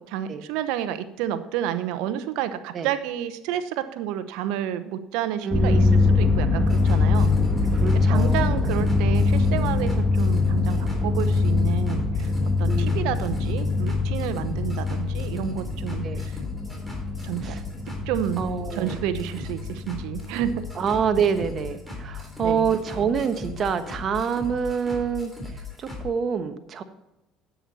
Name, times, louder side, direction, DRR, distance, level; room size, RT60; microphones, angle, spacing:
voice 1, 0.0-5.9 6.2-7.3 8.1-12.3 12.6-16.4 17.2-17.6 18.1-18.4 18.7-20.6 22.4-22.7, right 11 dB, 80° right, 12 dB, 0.9 m, -30 dB
voice 2, 5.4-6.2 7.7-8.6 12.7-13.1 16.0-16.3 17.4-17.6 18.4-19.0 20.8-25.3 25.8-26.8, right 6 dB, 45° right, 9 dB, 1.1 m, -27 dB
sound 1, 5.5-21.5, left 3 dB, 20° left, 2.1 m, -23 dB
sound 2, 6.7-26.0, left 3 dB, ahead, 3.5 m, -38 dB
10.0 x 8.6 x 4.2 m, 0.93 s
supercardioid pair, 90°, 0 cm